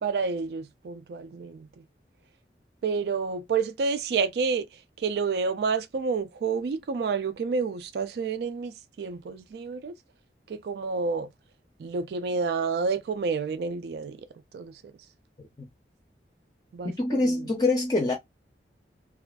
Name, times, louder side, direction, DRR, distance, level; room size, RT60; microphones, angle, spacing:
voice 1, 0.0-1.7 2.8-9.9 10.5-11.3 11.8-14.3 14.5-14.9 16.7-17.5, right 5 dB, 65° right, 0.3 m, -29 dB
voice 2, 16.8-18.1, left 2 dB, 20° left, 0.5 m, -24 dB
2.4 x 2.4 x 2.2 m
head